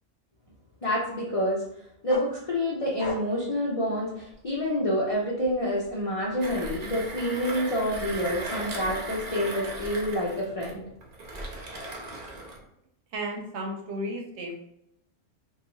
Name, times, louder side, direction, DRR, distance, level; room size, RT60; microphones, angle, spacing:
voice 1, 0.8-1.6 2.0-10.8, equal, 55° left, -6 dB, 0.4 m, -28 dB
sound 1, 2.1-4.7 5.1-7.1, left 2 dB, 85° left, 1.0 m, -42 dB
Mechanisms, 6.4-12.6, right 2 dB, 50° right, 0.5 m, -37 dB
voice 2, 13.1-14.5, right 1 dB, 70° right, 0 dB, 0.8 m, -33 dB
2.5 x 2.3 x 2.9 m, 0.78 s
omnidirectional pair, 1.3 m